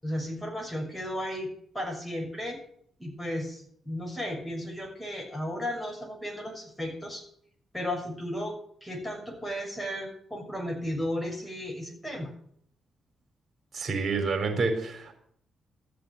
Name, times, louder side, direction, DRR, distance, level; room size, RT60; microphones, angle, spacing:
voice 1, 0.0-2.6 3.0-7.2 7.7-12.3, equal, 10° left, 1 dB, 6.4 m, -34 dB
voice 2, 13.7-15.1, right 4 dB, 45° right, 4 dB, 4.2 m, -28 dB
14.0 x 6.9 x 9.1 m, 0.67 s
hypercardioid pair, 45°, 0 cm